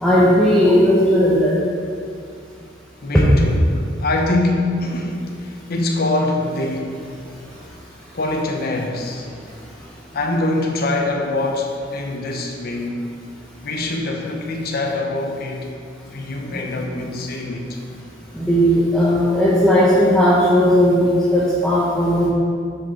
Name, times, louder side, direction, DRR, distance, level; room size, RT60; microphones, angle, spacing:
voice 1, 0.0-1.5 3.1-3.2 16.5-16.6 16.9-17.0 18.4-22.3, equal, 5° left, -8 dB, 1.0 m, -16 dB
voice 2, 3.0-7.1 8.1-9.3 10.1-13.1 13.6-15.7 16.1-17.8, left 2 dB, 55° left, 1 dB, 0.8 m, -24 dB
8.2 x 5.6 x 3.8 m, 2.3 s
head